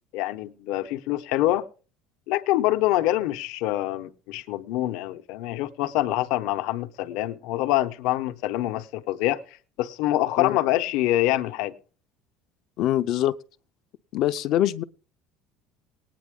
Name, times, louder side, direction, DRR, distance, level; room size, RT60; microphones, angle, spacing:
voice 1, 0.1-1.7 2.3-9.4 9.8-11.7, left 15 dB, 70° left, 0.9 m, -25 dB
voice 2, 12.8-13.3 14.1-14.8, left 13 dB, 50° left, 0.6 m, -23 dB
19.5 x 9.3 x 3.7 m
cardioid pair, 155°, 0 cm